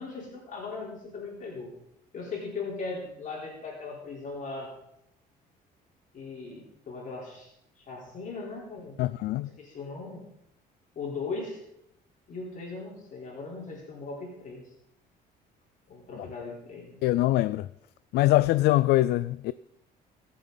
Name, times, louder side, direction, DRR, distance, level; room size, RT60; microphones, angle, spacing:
voice 1, 0.0-1.7 2.1-4.7 6.1-10.2 11.0-11.6 12.3-14.7 15.9-17.0, left 4 dB, 50° left, 3.9 m, -39 dB
voice 2, 9.0-9.5 17.0-17.7 18.1-19.5, left 16 dB, 75° left, 0.4 m, -23 dB
21.0 x 7.5 x 4.0 m
cardioid pair, 110°, 17 cm